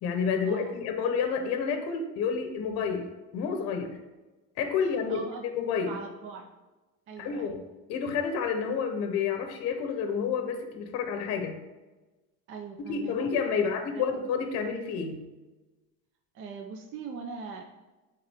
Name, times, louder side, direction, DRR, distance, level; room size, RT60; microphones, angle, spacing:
voice 1, 0.0-3.1 3.3-4.0 4.6-6.0 7.2-7.6 7.9-11.6 12.9-15.3, left 6 dB, 45° left, 6 dB, 0.8 m, -29 dB
voice 2, 4.8-5.5 5.9-6.5 7.1-7.6 12.5-13.1 13.5-14.1 16.3-17.6, right 5 dB, 35° right, 3 dB, 0.5 m, -41 dB
9.1 x 3.8 x 3.4 m, 1.2 s
cardioid pair, 165°, 36 cm